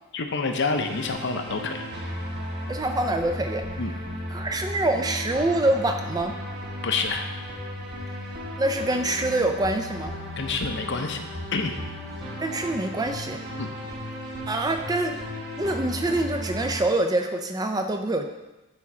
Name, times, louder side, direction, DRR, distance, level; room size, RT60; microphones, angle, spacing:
voice 1, 0.1-1.8 3.8-3.9 6.8-7.3 10.4-11.2 11.5-11.7 13.6-13.7, left 4 dB, 55° left, 5 dB, 0.7 m, -27 dB
sound 1, 0.8-16.8, left 1 dB, 50° right, 1.4 m, -35 dB
voice 2, 2.7-3.8 4.3-6.3 8.6-10.1 12.4-13.4 14.5-15.2 15.6-18.3, right 2 dB, 15° right, 5 dB, 0.4 m, -25 dB
9.5 x 3.7 x 4.3 m, 1.1 s
head